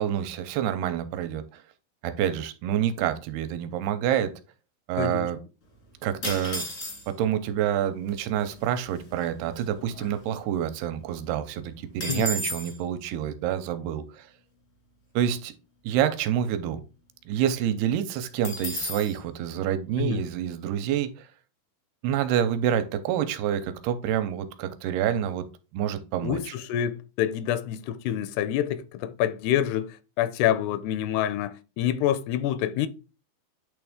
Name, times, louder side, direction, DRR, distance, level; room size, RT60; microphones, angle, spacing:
voice 1, 0.0-1.6 2.0-4.3 4.9-5.4 6.0-6.6 7.1-14.3 15.2-15.5 15.8-16.8 17.3-21.3 22.0-25.5 25.7-26.5, right 10 dB, 90° right, 2.6 m, -27 dB
voice 2, 5.0-5.3 12.1-12.4 20.0-20.2 26.2-32.9, left 11 dB, 85° left, 2.7 m, -27 dB
sound 1, 6.2-7.3 8.1-8.2 8.4-8.7 9.2-10.6 11.0-11.1 11.4-12.8 18.4-19.2, left 1 dB, 65° left, 0.8 m, -34 dB
8.6 x 3.5 x 3.6 m
omnidirectional pair, 4.6 m